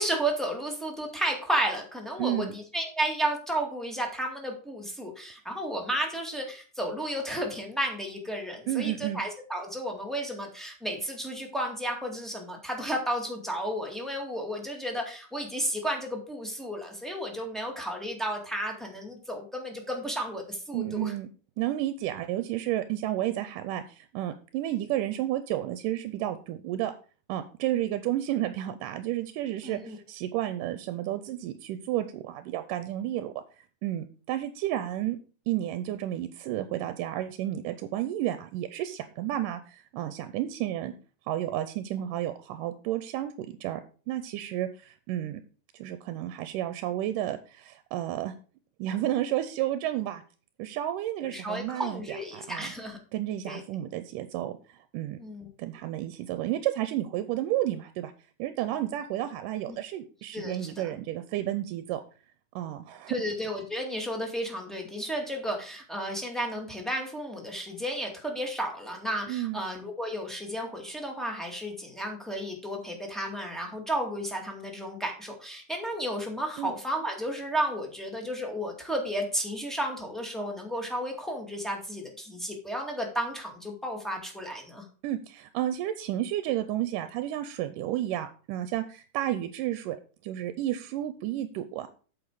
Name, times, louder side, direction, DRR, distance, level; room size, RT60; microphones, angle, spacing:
voice 1, 0.0-21.1 29.6-30.0 51.2-53.0 53.5-53.6 55.2-55.5 59.7-59.8 60.3-60.9 63.1-84.8, right 1 dB, ahead, 0 dB, 1.2 m, -33 dB
voice 2, 2.2-2.5 8.7-9.2 20.7-21.3 21.6-26.9 27.3-35.2 35.5-40.9 41.3-43.8 44.1-45.4 45.7-48.4 48.8-50.2 50.6-52.7 53.1-55.2 55.6-58.1 58.4-62.0 62.6-63.2 69.3-69.6 76.6-76.7 85.0-90.0 90.2-91.9, right 13 dB, 85° right, 11 dB, 2.2 m, -31 dB
8.7 x 6.8 x 4.8 m, 0.38 s
omnidirectional pair, 3.8 m